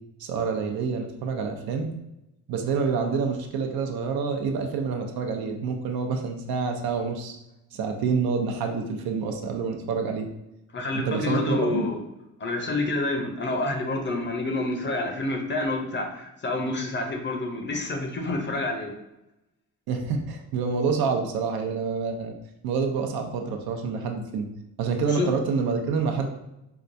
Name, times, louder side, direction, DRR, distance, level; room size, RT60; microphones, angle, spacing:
voice 1, 0.2-1.9 2.5-7.4 7.7-10.3 10.9-11.9 19.9-22.3 22.6-24.5 24.8-26.3, right 5 dB, 80° right, 3 dB, 0.7 m, -27 dB
voice 2, 10.7-12.0 12.4-18.9 25.1-25.3, left 2 dB, 30° left, 3 dB, 0.6 m, -28 dB
4.6 x 2.2 x 2.6 m, 0.90 s
cardioid pair, 110°, 36 cm